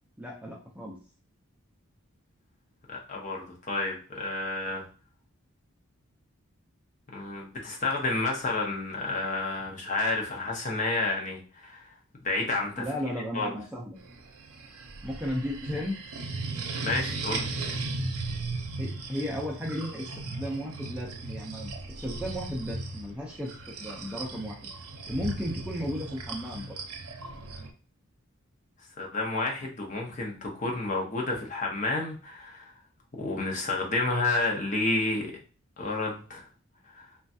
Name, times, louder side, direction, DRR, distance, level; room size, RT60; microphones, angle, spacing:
voice 1, 0.2-1.0 12.8-14.0 15.0-16.0 18.8-21.7 22.0-23.5 23.8-24.7 25.1-26.8, equal, 5° right, -2 dB, 0.4 m, -34 dB
voice 2, 2.9-4.8 7.1-11.8 12.2-12.8 13.3-13.5 16.8-17.5 29.0-32.7 33.2-35.3 35.8-36.4 36.9-37.1, left 2 dB, 35° left, 0 dB, 0.7 m, -30 dB
sound 1, 14.0-27.7, right 3 dB, 90° right, 0.6 m, -37 dB
3.1 x 2.3 x 2.6 m, 0.37 s
head